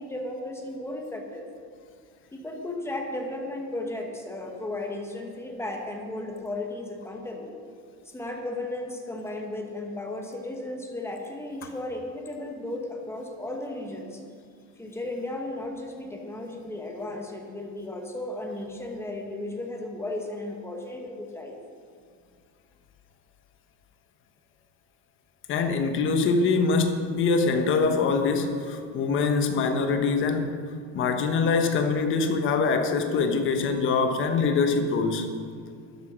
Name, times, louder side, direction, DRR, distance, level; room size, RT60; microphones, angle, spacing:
voice 1, 0.0-1.5 2.3-7.6 8.0-14.2 14.8-21.6, left 2 dB, 5° left, 2 dB, 1.1 m, -35 dB
voice 2, 25.5-30.5 30.9-35.3, left 4 dB, 35° left, 6 dB, 1.2 m, -24 dB
12.5 x 12.0 x 6.3 m, 2.2 s
cardioid pair, 175°, 36 cm